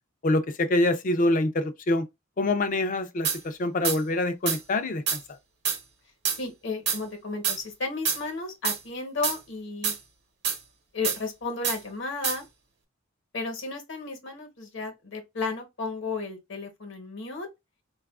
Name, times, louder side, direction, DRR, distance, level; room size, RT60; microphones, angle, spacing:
voice 1, 0.2-2.0 2.4-5.2, left 2 dB, 40° left, 0.4 m, -25 dB
sound 1, 3.2-3.4 3.8-4.0 4.5-4.6 5.1-5.2 5.6-5.8 6.2-6.4 6.9-7.0 7.4-7.6 8.1-8.2 8.6-8.8 9.2-9.4 9.8-10.0 10.4-10.6 11.0-11.2 11.6-11.8 12.2-12.4, right 6 dB, 60° right, 0.8 m, -26 dB
voice 2, 6.4-9.9 10.9-12.4 13.3-17.5, left 3 dB, 65° left, 1.0 m, -33 dB
3.9 x 2.3 x 2.3 m
head